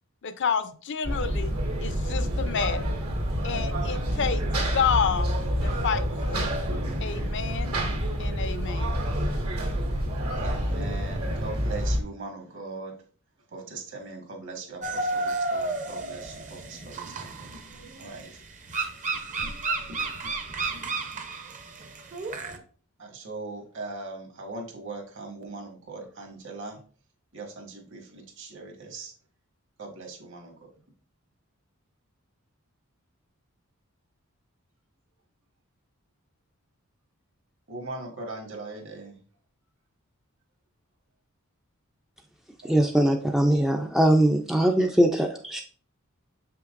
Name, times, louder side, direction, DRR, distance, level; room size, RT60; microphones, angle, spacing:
voice 1, 0.2-1.5 1.8-2.9 3.4-5.3 5.6-6.6 7.0-7.7 8.2-9.0, left 6 dB, 55° left, 0.5 m, -29 dB
sound 1, 1.0-12.0, equal, 80° right, 2.2 m, -28 dB
voice 2, 10.4-12.9 13.5-17.3 17.6-18.4 23.0-26.8 27.3-29.1 29.8-30.5 37.7-39.2 42.6-42.7, right 3 dB, 60° right, 1.6 m, -40 dB
sound 2, 14.8-22.6, right 3 dB, 35° right, 0.7 m, -32 dB
voice 3, 42.6-45.6, right 1 dB, ahead, 0.4 m, -21 dB
7.0 x 5.7 x 2.5 m
head